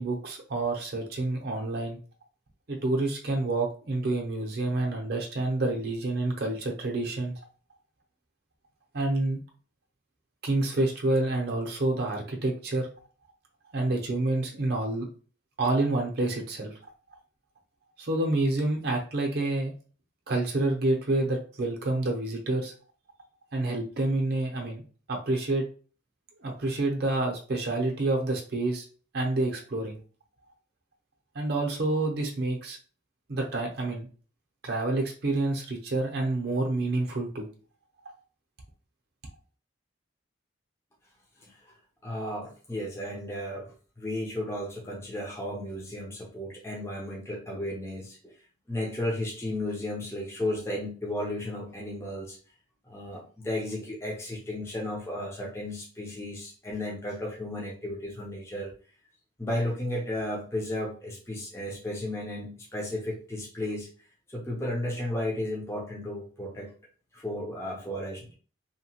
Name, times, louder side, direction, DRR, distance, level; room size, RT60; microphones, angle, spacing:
voice 1, 0.0-2.0 2.7-7.3 8.9-9.4 10.4-12.9 13.7-15.1 15.6-16.7 18.0-19.7 20.3-22.7 23.5-24.8 25.1-25.6 26.4-28.8 29.1-30.0 31.3-32.8 33.3-34.1 34.6-37.5, right 2 dB, 50° right, 1 dB, 0.6 m, -28 dB
voice 2, 42.0-43.7 44.0-48.2 48.7-52.4 52.9-58.7 59.4-63.9 64.3-66.7 67.1-68.3, left 1 dB, 15° left, -2 dB, 0.5 m, -34 dB
2.8 x 2.1 x 2.8 m, 0.39 s
head